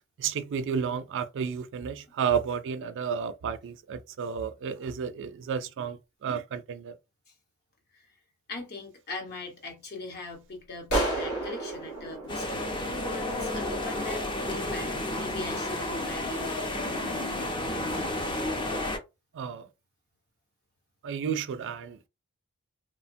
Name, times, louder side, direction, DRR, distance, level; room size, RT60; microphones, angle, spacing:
voice 1, 0.2-7.0 19.3-19.7 21.0-22.1, right 7 dB, 55° right, 0.4 m, -32 dB
voice 2, 8.5-16.7, left 3 dB, 45° left, 0.9 m, -41 dB
sound 1, 10.9-13.5, right 1 dB, 90° left, 1.1 m, -31 dB
sound 2, 12.3-19.0, left 1 dB, 20° left, 0.5 m, -31 dB
3.0 x 2.1 x 2.5 m
head